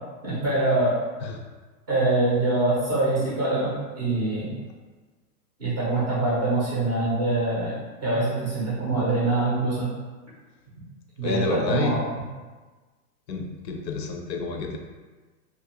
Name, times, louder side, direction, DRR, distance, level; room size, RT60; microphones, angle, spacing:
voice 1, 0.2-0.9 1.9-4.6 5.6-7.7 8.0-9.9 11.2-12.0, right 2 dB, 25° right, -8 dB, 0.4 m, -24 dB
voice 2, 11.2-12.0 13.3-14.8, left 4 dB, 80° left, 2 dB, 0.7 m, -29 dB
2.4 x 2.1 x 2.8 m, 1.3 s
hypercardioid pair, 145°, 49 cm